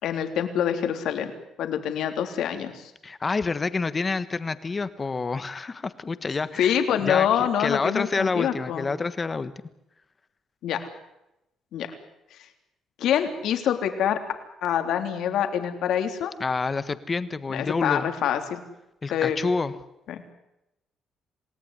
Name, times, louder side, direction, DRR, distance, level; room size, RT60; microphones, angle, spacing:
voice 1, 0.0-1.3 1.6-2.9 6.6-8.8 10.6-10.8 11.7-11.9 13.0-14.2 14.6-16.3 17.5-18.6 19.1-19.5 20.1-20.2, left 9 dB, 75° left, 6 dB, 3.4 m, -25 dB
voice 2, 3.0-6.7 7.0-9.5 16.4-18.1 19.0-19.7, left 4 dB, 25° left, 13 dB, 1.4 m, -28 dB
27.5 x 18.0 x 9.9 m, 0.90 s
cardioid pair, 135°, 0 cm